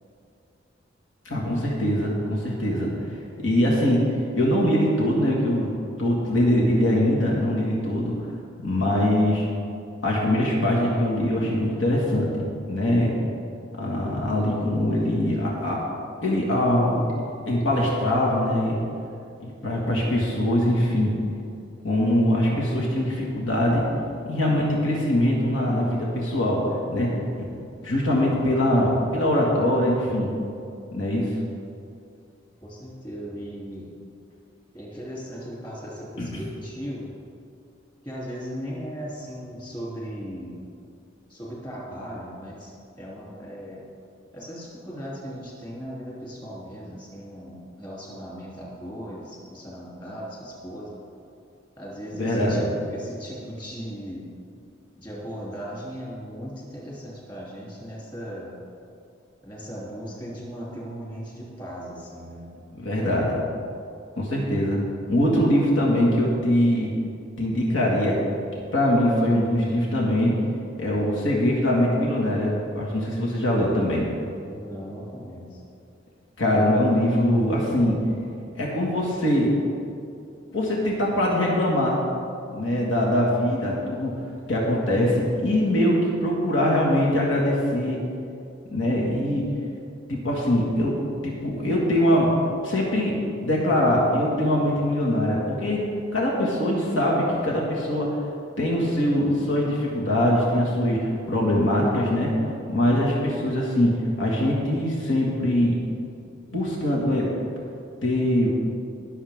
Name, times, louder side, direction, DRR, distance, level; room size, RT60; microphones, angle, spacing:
voice 1, 1.3-2.9 3.4-4.0 4.3-5.7 6.0-8.1 8.6-9.5 10.0-13.1 13.7-15.8 16.2-17.1 17.4-18.8 19.4-21.1 21.8-23.8 24.2-26.6 26.9-27.1 27.4-27.5 27.8-30.3 30.9-31.3 36.2-36.3 52.2-52.7 62.7-63.4 64.2-64.8 65.1-66.9 67.4-68.2 68.7-70.3 70.8-74.1 76.4-78.0 78.6-79.5 80.5-82.0 82.5-84.1 84.5-88.0 88.7-89.4 90.1-90.9 91.2-92.3 92.6-93.1 93.4-95.8 96.1-98.1 98.6-102.3 102.7-103.9 104.2-105.8 106.5-107.3 108.0-108.5, left 1 dB, 90° left, -4 dB, 2.0 m, -22 dB
voice 2, 32.6-33.9 34.7-37.1 38.0-40.6 41.3-43.8 44.3-50.9 51.8-54.3 55.0-58.5 59.4-62.5 74.5-75.6, equal, 25° left, -6 dB, 3.1 m, -37 dB
21.5 x 7.1 x 3.7 m, 2.5 s
head